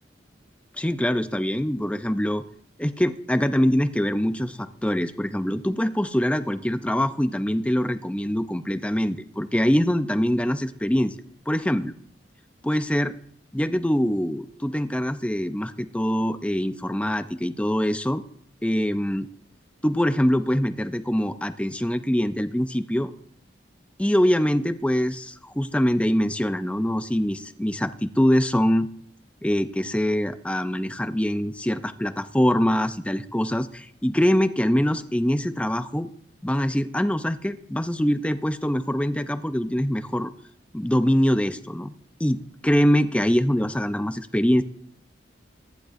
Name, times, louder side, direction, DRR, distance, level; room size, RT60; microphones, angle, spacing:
voice 1, 0.7-2.4 2.8-11.2 11.5-11.9 12.6-13.1 13.5-18.2 18.6-19.3 19.8-23.1 24.0-28.9 29.4-36.1 36.4-40.3 40.7-41.9 42.2-44.6, equal, 5° left, 10 dB, 0.5 m, -24 dB
23.5 x 10.5 x 2.6 m, 0.67 s
head